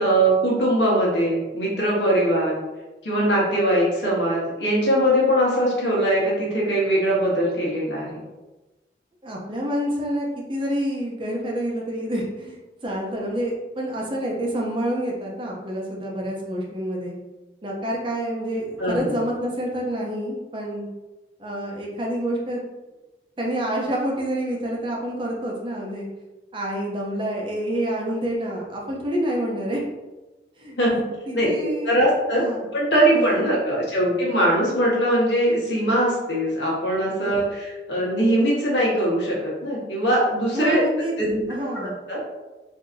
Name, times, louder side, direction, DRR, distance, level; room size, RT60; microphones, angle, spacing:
voice 1, 0.0-2.6 3.0-8.2 18.8-19.2 30.8-31.0 31.3-32.4 32.7-40.8 41.2-41.4 41.7-42.2, right 1 dB, 85° left, -4 dB, 1.2 m, -21 dB
voice 2, 9.2-17.1 17.6-20.9 21.4-22.6 23.4-26.1 26.5-29.8 30.6-32.0 32.3-32.7 33.1-33.5 37.2-37.4 40.5-41.1 41.5-41.9, right 1 dB, 30° right, -2 dB, 0.6 m, -28 dB
3.8 x 2.7 x 2.6 m, 1.1 s
head